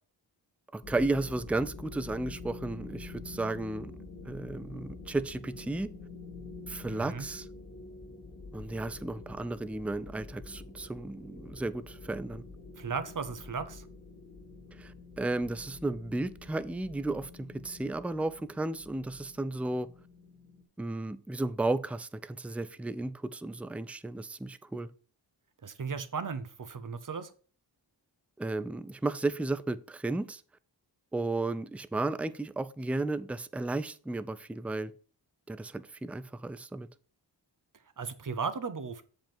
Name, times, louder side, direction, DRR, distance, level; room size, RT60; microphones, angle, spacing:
voice 1, 0.7-3.9 4.2-5.9 6.7-7.5 8.5-12.4 14.8-19.9 20.8-24.9 28.4-30.4 31.1-34.9 35.5-36.9, right 2 dB, 5° right, 0.4 m, -34 dB
sound 1, 0.8-20.6, left 3 dB, 40° left, 2.0 m, -47 dB
voice 2, 6.9-7.3 12.8-13.8 25.6-27.3 38.0-39.0, right 5 dB, 45° right, 0.9 m, -36 dB
7.5 x 5.2 x 4.4 m
cardioid pair, 65°, 43 cm